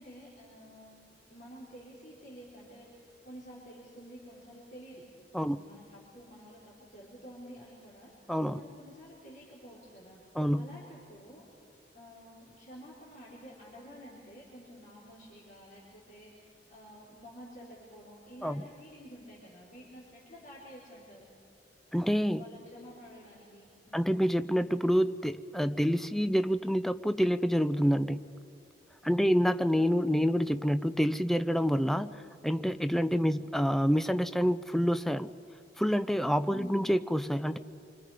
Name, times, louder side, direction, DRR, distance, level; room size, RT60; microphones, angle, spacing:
voice 1, 0.0-5.0 5.4-8.1 8.5-10.2 10.5-11.4 11.9-21.3 22.3-24.1 29.0-29.4 33.2-33.4 36.5-37.0, equal, 50° left, -7 dB, 4.2 m, -50 dB
voice 2, 8.3-8.6 10.4-10.7 18.4-18.6 21.9-22.4 23.9-28.2 29.0-32.1 32.4-35.3 35.8-37.6, equal, ahead, 11 dB, 0.5 m, -27 dB
27.5 x 25.5 x 5.0 m, 2.4 s
head